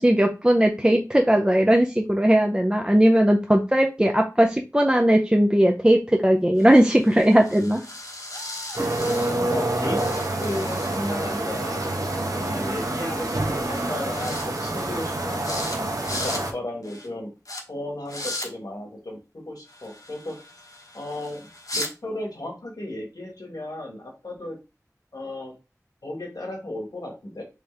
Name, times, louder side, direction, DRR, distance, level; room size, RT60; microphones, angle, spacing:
voice 1, 0.0-7.8 8.8-8.9, right 1 dB, 15° right, 3 dB, 0.5 m, -18 dB
sound 1, 6.6-9.7 10.0-11.4 12.8-12.9 13.2-13.4 13.7-14.5 14.8-15.1 15.4-15.8 16.0-16.4 16.8-17.1 17.5-17.6 18.1-18.5 19.7-21.9, left 1 dB, 70° left, 1.0 m, -37 dB
sound 2, 8.8-16.5, right 1 dB, 70° right, 0.9 m, -27 dB
voice 2, 9.2-10.0 10.4-12.0 12.3-15.7 16.1-17.3 17.7-20.3 20.9-21.5 21.7-24.6 25.1-25.5 26.0-27.4, left 1 dB, 85° left, 0 dB, 1.5 m, -34 dB
4.4 x 3.5 x 3.3 m, 0.28 s
wide cardioid pair, 45°, 6 cm